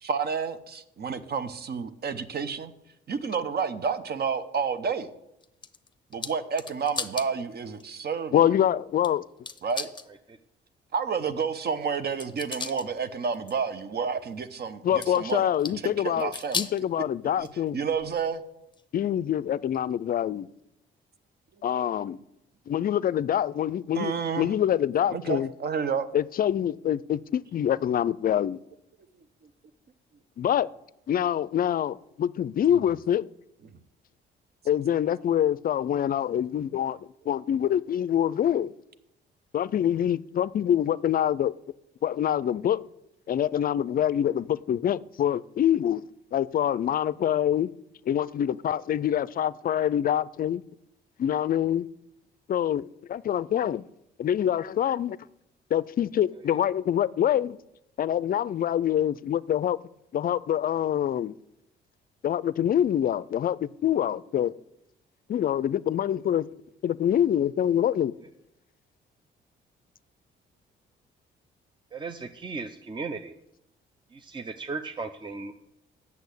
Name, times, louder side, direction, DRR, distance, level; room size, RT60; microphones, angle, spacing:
voice 1, 0.0-2.7 3.1-5.1 6.1-8.4 9.6-9.9 10.9-15.5 15.8-16.7 17.4-18.4 23.9-24.5 25.1-26.1 32.7-32.8 33.6-33.8, right 6 dB, 55° right, 1.0 m, -30 dB
sound 1, 5.4-7.3 7.8-7.9 9.0-9.1 9.5-10.1 11.9-12.9 13.3-13.6 15.0-15.9 16.2-16.8 17.4-18.3 18.7-18.8 19.7-19.8, left 5 dB, 25° left, 0.8 m, -36 dB
voice 2, 8.3-9.2 14.8-17.8 18.9-20.5 21.6-22.2 22.7-25.5 26.1-28.6 30.4-30.7 31.1-33.3 34.7-37.0 37.3-38.7 39.5-41.5 42.0-42.8 43.3-46.0 46.3-47.7 48.1-50.6 51.2-51.9 52.5-53.8 54.2-55.2 55.7-57.6 58.0-59.8 60.1-61.4 62.2-64.5 65.3-66.5 66.8-68.1, left 10 dB, 45° left, 0.4 m, -25 dB
voice 3, 71.9-73.3 74.1-75.6, right 4 dB, 25° right, 0.6 m, -36 dB
8.4 x 7.0 x 8.2 m
cardioid pair, 90°, 20 cm